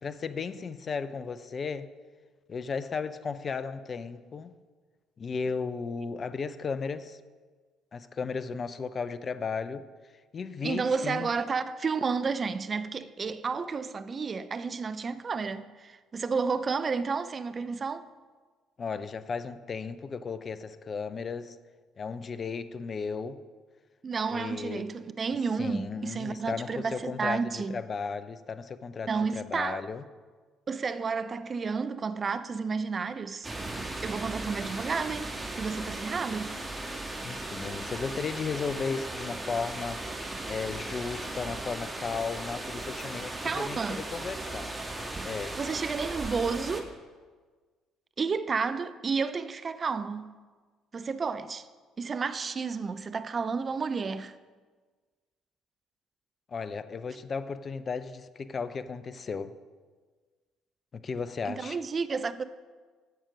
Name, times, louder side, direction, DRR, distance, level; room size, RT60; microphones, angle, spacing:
voice 1, 0.0-1.9 2.5-4.5 5.2-7.2 7.9-9.9 10.3-11.3 18.8-21.6 22.0-23.4 24.3-24.9 25.6-30.0 37.2-40.0 40.5-44.7 45.2-45.6 56.5-59.5 60.9-61.8, left 5 dB, 40° left, 0.5 m, -35 dB
voice 2, 10.6-18.0 24.0-27.8 29.1-29.8 30.7-33.5 34.0-35.3 35.6-36.5 43.4-44.0 45.6-46.9 48.2-50.3 50.9-51.7 52.0-54.3 61.5-62.4, right 5 dB, 35° right, 0.5 m, -31 dB
sound 1, 33.4-46.8, right 2 dB, 20° right, 1.6 m, -37 dB
10.0 x 7.2 x 5.1 m
figure-of-eight pair, 50°, 0 cm